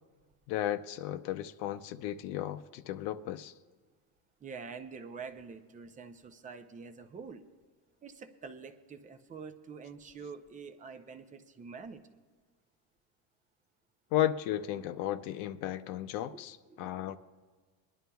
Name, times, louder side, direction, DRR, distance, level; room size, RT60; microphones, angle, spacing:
voice 1, 0.5-3.5 14.1-17.2, left 12 dB, 70° left, 10 dB, 0.7 m, -34 dB
voice 2, 4.4-7.4 8.0-12.2 16.7-17.0, right 5 dB, 15° right, 8 dB, 0.5 m, -46 dB
23.0 x 11.0 x 2.3 m, 1.5 s
cardioid pair, 150°, 49 cm